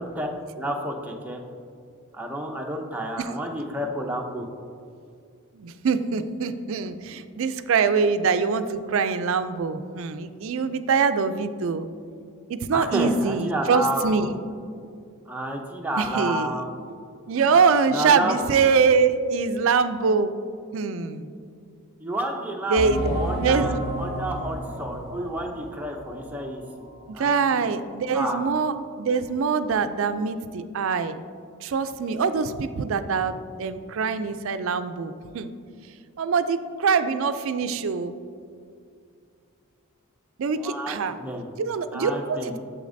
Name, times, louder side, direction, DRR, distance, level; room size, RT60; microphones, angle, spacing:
voice 1, 0.0-1.4 2.1-4.5 12.7-14.4 15.3-17.0 17.3-17.6 17.9-18.4 22.0-26.8 27.1-27.7 28.1-28.4 40.5-41.5 41.9-42.6, right 1 dB, 10° right, 0 dB, 0.6 m, -30 dB
voice 2, 5.5-11.9 12.5-14.3 16.0-16.6 17.3-20.3 20.7-21.3 22.7-23.1 23.4-23.8 27.1-31.2 31.6-35.5 36.2-38.2 40.4-41.2 41.6-42.6, right 5 dB, 60° right, 11 dB, 0.4 m, -24 dB
sound 1, 22.8-27.0 27.4-27.5 28.0-28.1, equal, 75° left, 1.5 m, -32 dB
8.3 x 7.0 x 2.6 m, 2.3 s
head